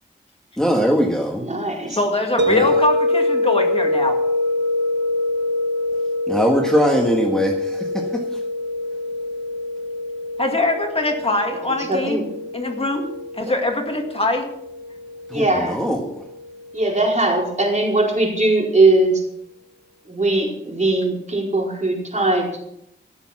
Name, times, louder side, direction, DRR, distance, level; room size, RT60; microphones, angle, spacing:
voice 1, 0.6-1.4 1.9-2.0 2.5-2.8 6.3-8.4 15.3-16.2, equal, 5° left, 0 dB, 1.6 m, -21 dB
voice 2, 1.4-2.0 11.7-12.2 13.5-13.6 15.3-15.8 16.7-19.2 20.1-22.5, right 2 dB, 40° right, -1 dB, 4.5 m, -20 dB
voice 3, 2.0-4.2 10.4-12.2 12.5-13.1 13.4-14.5, left 2 dB, 30° left, 3 dB, 2.0 m, -22 dB
sound 1, 2.4-17.3, left 2 dB, 70° right, 1.3 m, -25 dB
17.0 x 7.1 x 6.0 m, 0.79 s
wide cardioid pair, 75°, 19 cm